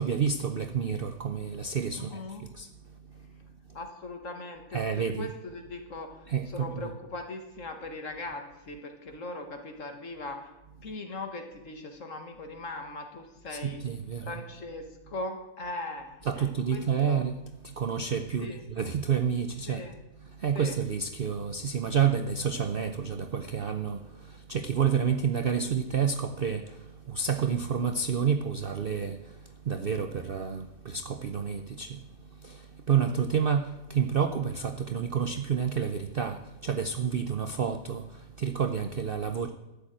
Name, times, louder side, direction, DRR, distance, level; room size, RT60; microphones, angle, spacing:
voice 1, 0.0-3.8 4.7-5.3 6.3-6.9 13.5-14.4 16.2-19.8 20.2-39.5, right 7 dB, 55° right, 8 dB, 0.6 m, -30 dB
voice 2, 1.9-2.5 3.7-10.5 10.8-13.8 14.2-17.2 18.4-18.6 19.7-20.0 20.5-20.7, left 2 dB, 55° left, 5 dB, 1.9 m, -40 dB
12.5 x 7.2 x 8.8 m, 1.0 s
omnidirectional pair, 1.7 m